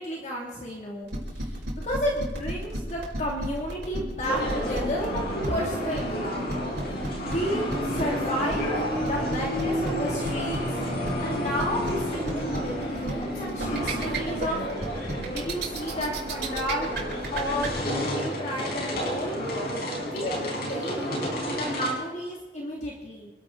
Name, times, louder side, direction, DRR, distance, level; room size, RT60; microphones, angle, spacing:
voice 1, 0.0-5.2 5.5-6.4 6.9-10.8 11.2-14.6 15.3-16.9 17.3-19.4 20.0-21.0 21.5-23.3, equal, 40° left, -2 dB, 2.6 m, -32 dB
sound 1, 1.1-17.7, right 2 dB, 65° right, 5.6 m, -33 dB
sound 2, 4.2-21.9, equal, 60° left, 5.3 m, -30 dB
27.5 x 12.5 x 3.9 m, 1.2 s
head